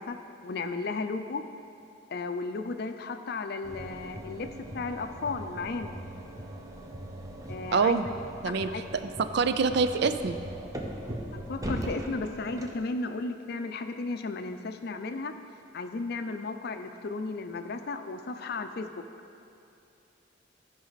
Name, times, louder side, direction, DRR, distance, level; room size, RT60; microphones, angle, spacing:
voice 1, 0.0-1.5 2.1-6.0 7.5-8.0 8.4-8.8 11.3-15.3 15.7-19.0, left 3 dB, 55° left, 8 dB, 0.5 m, -34 dB
sound 1, 3.6-12.8, right 1 dB, 20° right, 0.7 m, -40 dB
voice 2, 7.7-8.1 8.4-10.4, right 5 dB, 65° right, 10 dB, 0.4 m, -26 dB
13.5 x 5.4 x 4.0 m, 2.7 s
head